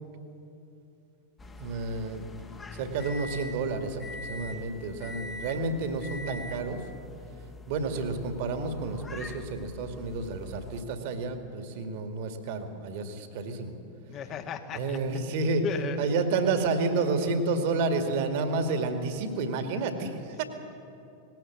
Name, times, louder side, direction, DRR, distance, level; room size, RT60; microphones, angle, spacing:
sound 1, 1.4-10.8, left 3 dB, 15° left, 1.4 m, -43 dB
voice 1, 1.5-2.2 2.7-6.8 7.7-13.8 14.7-15.6 16.0-20.4, right 3 dB, 50° right, 6 dB, 2.1 m, -30 dB
voice 2, 14.1-15.0 15.6-16.2, left 6 dB, 35° left, 7 dB, 1.6 m, -35 dB
19.0 x 16.5 x 8.7 m, 2.7 s
figure-of-eight pair, 90°, 0 cm